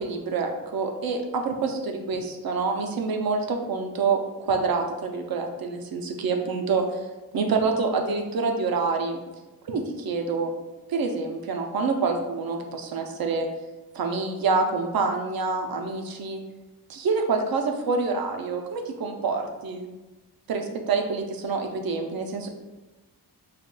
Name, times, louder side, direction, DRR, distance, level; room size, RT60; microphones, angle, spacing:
voice 1, 0.0-4.2 4.5-6.8 7.3-9.2 9.6-10.5 10.9-13.5 13.9-16.4 16.9-19.9 20.5-22.5, right 4 dB, 65° right, 4 dB, 0.5 m, -27 dB
5.0 x 2.3 x 2.2 m, 1.1 s
wide cardioid pair, 130°, 39 cm